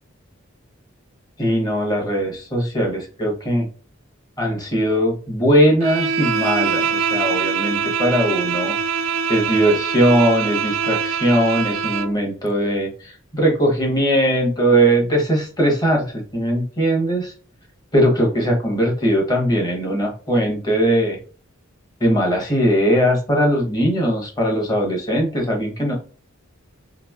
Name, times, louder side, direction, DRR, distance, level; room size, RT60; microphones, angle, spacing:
voice 1, 1.4-3.7 4.4-17.3 17.9-21.2 22.0-25.9, equal, 20° left, -1 dB, 1.0 m, -20 dB
Bowed string instrument, 5.8-12.2, right 6 dB, 65° right, 0.3 m, -23 dB
3.1 x 2.6 x 2.3 m, 0.39 s
head